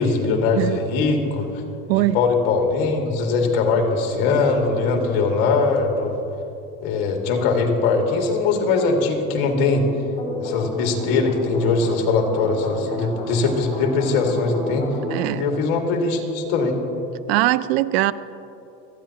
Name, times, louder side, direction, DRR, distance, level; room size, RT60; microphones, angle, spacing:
voice 1, 0.0-1.6 2.1-6.2 6.8-9.9 10.4-14.9 15.3-16.8, left 4 dB, 60° left, 2 dB, 2.1 m, -21 dB
voice 2, 1.9-2.2 15.1-15.5 17.3-18.1, right 16 dB, 85° right, 16 dB, 0.5 m, -20 dB
sound 1, 10.0-15.2, left 1 dB, 25° left, 3.5 m, -32 dB
26.5 x 9.4 x 2.9 m, 2.8 s
cardioid pair, 165°, 30 cm